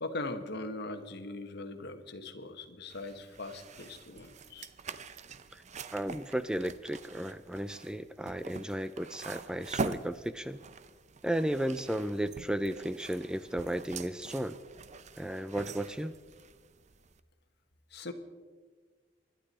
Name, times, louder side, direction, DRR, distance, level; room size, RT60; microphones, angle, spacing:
voice 1, 0.0-4.7 17.9-18.1, left 2 dB, 60° left, 7 dB, 1.4 m, -40 dB
sound 1, 2.9-17.2, right 4 dB, 40° right, 0.7 m, -44 dB
voice 2, 5.9-10.6 11.2-14.6 15.2-16.1, right 1 dB, 5° right, 12 dB, 0.4 m, -34 dB
26.0 x 12.0 x 4.3 m, 1.5 s
head